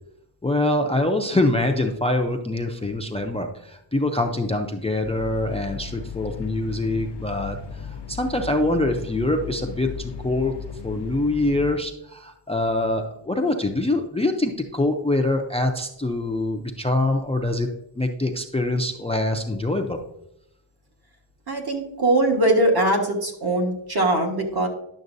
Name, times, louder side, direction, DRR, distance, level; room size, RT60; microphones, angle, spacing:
voice 1, 0.4-10.5 10.8-17.7 18.0-20.0, left 2 dB, 15° left, 4 dB, 0.4 m, -24 dB
sound 1, 5.0-11.8, left 7 dB, 60° left, 0.7 m, -36 dB
voice 2, 21.5-24.7, right 1 dB, 55° right, 1 dB, 1.6 m, -21 dB
11.0 x 7.1 x 2.6 m, 0.80 s
wide cardioid pair, 175°, 46 cm